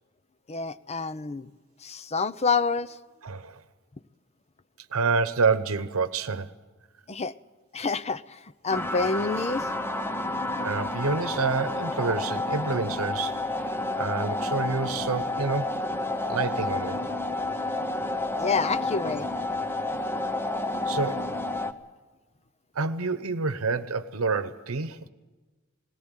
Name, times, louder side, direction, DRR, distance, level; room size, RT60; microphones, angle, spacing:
voice 1, 0.5-1.5 1.8-3.0 7.1-7.3 7.7-8.4 8.6-9.7 18.4-19.3, left 4 dB, 30° left, 0.6 m, -28 dB
voice 2, 3.2-3.6 4.9-6.5 10.6-15.7 16.3-17.0 20.9-21.3 22.7-25.1, right 4 dB, 80° right, 0.9 m, -28 dB
sound 1, 8.7-21.7, left 2 dB, 10° left, 0.9 m, -30 dB
19.5 x 17.5 x 9.0 m
head